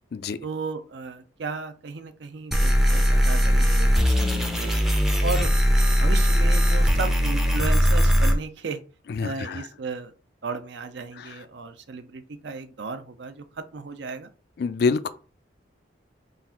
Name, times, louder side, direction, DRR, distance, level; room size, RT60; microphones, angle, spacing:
voice 1, 0.4-4.8 5.2-5.5 5.8-8.8 9.2-10.1 10.4-14.3, right 4 dB, 70° right, 0.5 m, -35 dB
sound 1, 2.5-8.3, equal, ahead, 0.5 m, -20 dB
voice 2, 9.1-9.6 11.2-11.3 14.6-15.1, left 4 dB, 55° left, 0.3 m, -26 dB
3.9 x 2.4 x 4.2 m
head